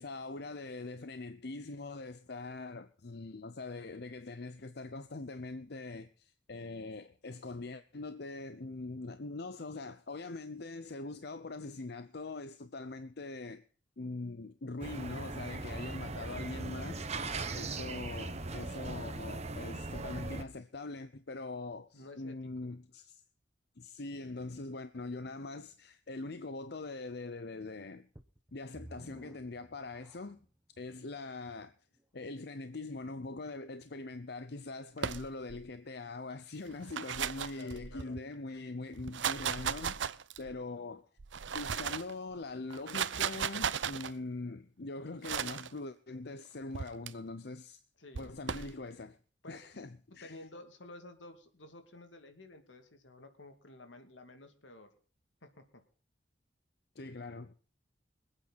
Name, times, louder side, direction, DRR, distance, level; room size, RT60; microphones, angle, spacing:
voice 1, 0.0-13.6 14.0-23.2 23.8-28.1 28.5-30.4 30.8-31.7 32.1-40.0 40.4-41.1 41.5-47.8 48.2-49.2 49.5-50.4 57.0-57.6, left 3 dB, 60° left, 0.7 m, -42 dB
sound 1, 14.8-20.4, right 3 dB, 35° right, 1.2 m, -39 dB
voice 2, 21.9-22.4 22.6-22.8 37.5-38.2 48.0-48.3 49.4-54.9 55.4-55.6, left 2 dB, 80° left, 2.5 m, -52 dB
sound 2, 28.1-30.6 31.2-31.3 31.9-32.0, right 1 dB, 15° right, 1.1 m, -54 dB
sound 3, 35.0-35.6 36.7-38.2 38.9-40.6 41.2-42.1 42.7-44.1 45.2-45.7 46.7-47.1 48.1-48.7, right 7 dB, 80° right, 0.7 m, -36 dB
25.5 x 8.9 x 4.2 m
head